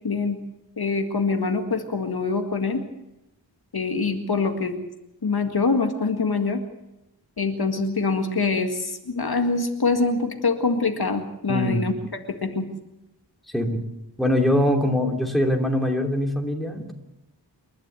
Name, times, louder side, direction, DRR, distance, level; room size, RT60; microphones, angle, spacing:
voice 1, 0.0-0.4 0.8-2.8 3.7-4.8 5.2-6.6 7.4-11.9 12.4-12.7, left 4 dB, 60° left, 5 dB, 2.0 m, -24 dB
voice 2, 11.5-11.9 13.5-13.8 14.2-16.9, left 1 dB, ahead, 2 dB, 3.0 m, -23 dB
28.5 x 11.5 x 8.3 m, 0.92 s
wide cardioid pair, 90°, 43 cm